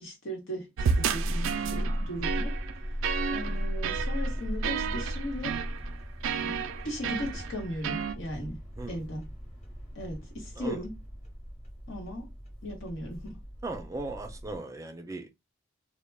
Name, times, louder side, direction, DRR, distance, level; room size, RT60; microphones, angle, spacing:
voice 1, 0.0-2.5 3.3-5.6 6.3-8.6 8.9-9.2 9.9-10.9 11.9-12.3 12.6-13.4, equal, 85° left, 1.1 m, -37 dB
sound 1, 0.8-14.6, equal, 35° left, 0.9 m, -37 dB
sound 2, 0.8-8.2, right 6 dB, 85° right, 0.3 m, -32 dB
voice 2, 13.6-15.3, right 2 dB, 15° right, 0.4 m, -37 dB
2.2 x 2.1 x 3.2 m
head